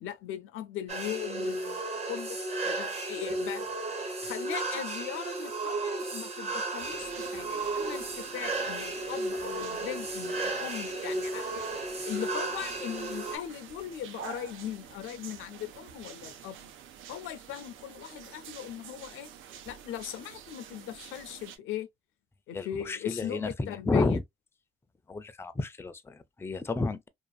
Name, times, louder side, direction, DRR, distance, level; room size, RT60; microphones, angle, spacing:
voice 1, 0.0-2.4 2.6-3.7 4.2-11.5 12.0-16.6 17.1-19.3 19.7-21.9 22.5-24.2, left 11 dB, 85° left, 0.4 m, -39 dB
sound 1, 0.9-13.4, right 2 dB, 35° right, 0.8 m, -34 dB
sound 2, 6.8-21.6, right 9 dB, 85° right, 0.5 m, -48 dB
voice 2, 22.5-24.2 25.1-27.1, left 3 dB, 10° left, 0.3 m, -31 dB
2.5 x 2.4 x 2.2 m
cardioid pair, 90°, 20 cm